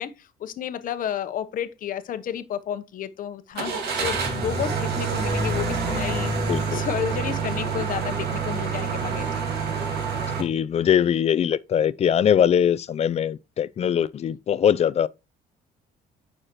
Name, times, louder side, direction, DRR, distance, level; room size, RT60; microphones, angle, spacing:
voice 1, 0.0-9.3, left 9 dB, 55° left, 1.0 m, -31 dB
Car / Engine starting, 3.5-10.4, right 4 dB, 75° right, 2.4 m, -27 dB
voice 2, 6.5-6.8 10.4-15.1, left 9 dB, 40° left, 0.5 m, -22 dB
9.0 x 5.9 x 3.0 m
cardioid pair, 110°, 17 cm